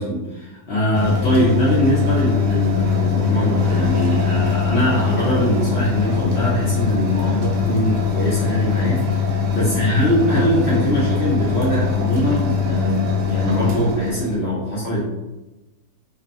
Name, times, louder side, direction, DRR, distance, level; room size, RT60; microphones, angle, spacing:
voice 1, 0.0-15.2, equal, 70° left, -7 dB, 0.6 m, -22 dB
sound 1, 0.9-14.4, left 6 dB, 90° right, 1.3 m, -21 dB
2.6 x 2.3 x 2.5 m, 1.0 s
omnidirectional pair, 1.8 m